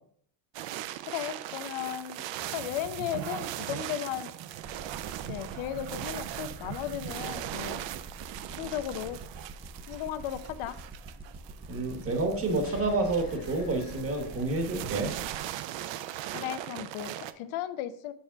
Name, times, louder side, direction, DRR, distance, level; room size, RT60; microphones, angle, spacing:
sound 1, 0.5-17.3, right 12 dB, 65° right, 0.6 m, -39 dB
voice 1, 1.1-2.2 2.5-4.3 5.3-7.8 8.5-9.2 9.9-10.8 16.3-18.1, left 11 dB, 85° left, 11 dB, 0.7 m, -35 dB
sound 2, 4.6-15.4, right 3 dB, 15° right, 0.4 m, -45 dB
voice 2, 11.7-15.1, right 2 dB, 30° right, 5 dB, 1.1 m, -29 dB
sound 3, 12.6-15.2, left 4 dB, 45° left, 1.1 m, -49 dB
7.0 x 3.3 x 6.1 m, 0.63 s
cardioid pair, 160°, 47 cm